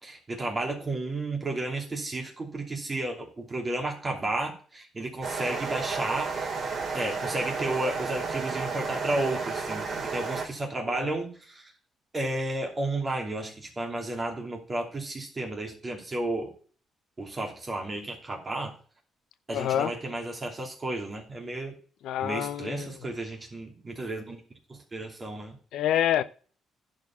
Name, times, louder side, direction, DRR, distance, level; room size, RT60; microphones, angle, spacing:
voice 1, 0.0-6.3 6.9-11.6 12.1-16.5 17.2-18.7 19.5-21.7 22.2-24.4 24.7-25.6, right 2 dB, 30° right, 2.9 m, -32 dB
sound 1, 5.2-10.5, right 4 dB, 45° right, 3.3 m, -32 dB
voice 2, 19.5-19.9 22.0-23.0 25.7-26.2, left 11 dB, 80° left, 0.5 m, -27 dB
10.5 x 4.9 x 7.2 m
cardioid pair, 90°, 0 cm